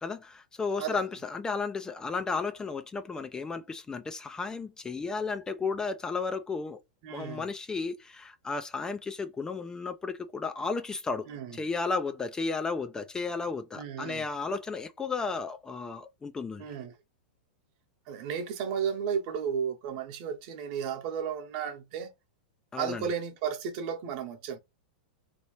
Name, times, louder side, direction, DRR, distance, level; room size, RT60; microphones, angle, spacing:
voice 1, 0.0-6.8 7.1-16.6 22.7-23.0, left 4 dB, 15° left, 0.3 m, -33 dB
voice 2, 7.0-7.5 11.3-11.6 13.7-14.2 16.6-16.9 18.1-22.1 22.8-24.6, right 7 dB, 55° right, 0.9 m, -33 dB
3.0 x 2.8 x 2.9 m
hypercardioid pair, 120°, 5 cm